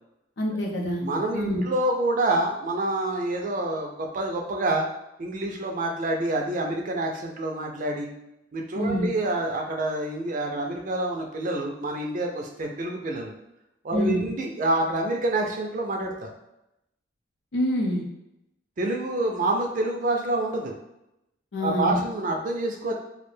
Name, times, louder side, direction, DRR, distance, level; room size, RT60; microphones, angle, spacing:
voice 1, 0.4-1.0 1.3-1.6 8.8-9.1 13.9-14.3 17.5-18.0 21.5-22.0, left 1 dB, 70° left, -1 dB, 0.6 m, -26 dB
voice 2, 1.0-4.9 5.2-8.1 8.5-13.3 13.8-16.3 18.8-20.8 21.6-22.9, right 2 dB, 45° right, 1 dB, 0.4 m, -27 dB
2.4 x 2.1 x 3.1 m, 0.88 s
head